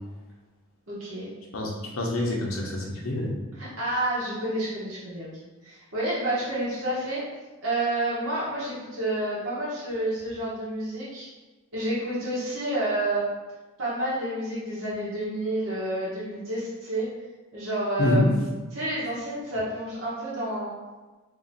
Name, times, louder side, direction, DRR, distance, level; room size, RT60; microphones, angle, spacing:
voice 1, 0.9-1.3 3.5-5.3 5.6-7.2 7.6-11.3 11.7-13.2 13.8-17.1 17.5-20.7, right 1 dB, 80° right, -9 dB, 1.1 m, -29 dB
voice 2, 1.5-3.3 18.0-18.2, left 1 dB, 85° left, -2 dB, 0.8 m, -26 dB
2.9 x 2.7 x 4.1 m, 1.3 s
head